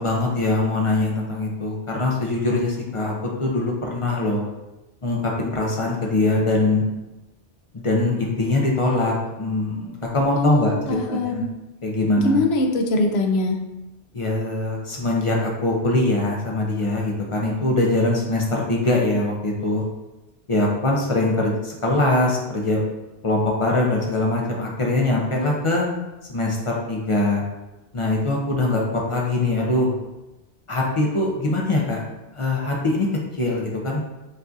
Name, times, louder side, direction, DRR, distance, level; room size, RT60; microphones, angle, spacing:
voice 1, 0.0-4.4 5.0-6.8 7.7-11.4 11.8-12.4 14.1-19.8 20.5-22.8 23.2-25.9 26.3-27.4 27.9-29.9 30.7-32.0 32.3-33.1 33.3-34.0, left 2 dB, 40° left, -2 dB, 0.4 m, -22 dB
voice 2, 10.4-11.5 12.2-13.6, left 2 dB, 70° left, 4 dB, 0.8 m, -22 dB
5.4 x 2.5 x 2.5 m, 1.0 s
omnidirectional pair, 1.2 m